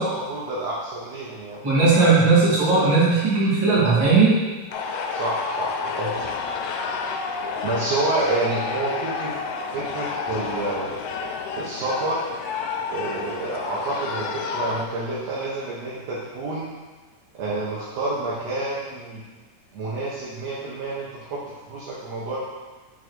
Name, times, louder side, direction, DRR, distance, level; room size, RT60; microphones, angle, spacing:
voice 1, 0.0-1.6 5.1-6.2 7.6-9.3 9.7-11.0 11.6-12.2 12.9-16.7 17.3-19.2 19.7-21.4 21.7-22.4, right 2 dB, 65° right, -7 dB, 2.2 m, -28 dB
voice 2, 1.6-4.3, right 4 dB, 40° right, -8 dB, 2.9 m, -17 dB
sound 1, 4.7-14.8, left 5 dB, 80° left, 1.5 m, -30 dB
8.7 x 3.7 x 4.7 m, 1.3 s
omnidirectional pair, 3.4 m